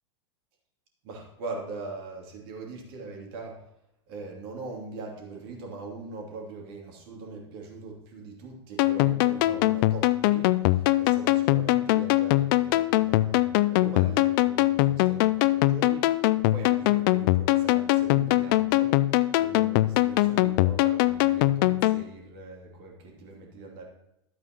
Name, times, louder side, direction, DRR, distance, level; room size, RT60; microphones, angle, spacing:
voice 1, 1.0-3.6 4.1-23.8, right 3 dB, 55° right, 0 dB, 2.8 m, -41 dB
sound 1, 8.8-22.0, left 17 dB, 50° left, 0.4 m, -22 dB
12.5 x 8.4 x 3.0 m, 0.83 s
hypercardioid pair, 95°, 15 cm